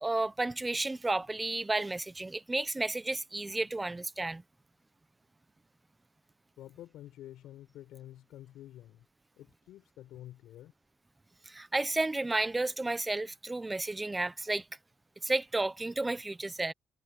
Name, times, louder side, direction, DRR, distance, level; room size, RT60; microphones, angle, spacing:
voice 1, 0.0-4.4 11.5-14.6 15.2-16.7, right 2 dB, 15° right, 0.9 m, -32 dB
voice 2, 6.6-9.1 9.3-10.7, left 13 dB, 70° left, 5.6 m, -49 dB
cardioid pair, 125°, 0 cm